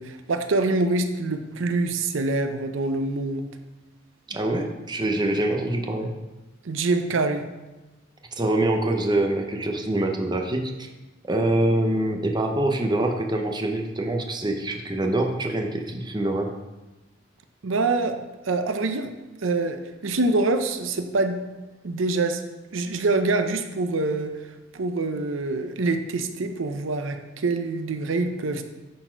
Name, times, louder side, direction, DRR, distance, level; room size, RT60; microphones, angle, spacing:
voice 1, 0.0-3.4 6.6-7.4 17.6-19.1 19.4-21.4 21.8-22.4 22.7-24.3 24.7-28.6, right 3 dB, 85° right, 7 dB, 0.6 m, -25 dB
voice 2, 4.3-6.1 8.4-10.9 11.3-16.5, right 1 dB, 20° right, 3 dB, 0.7 m, -25 dB
10.5 x 4.2 x 4.5 m, 1.1 s
head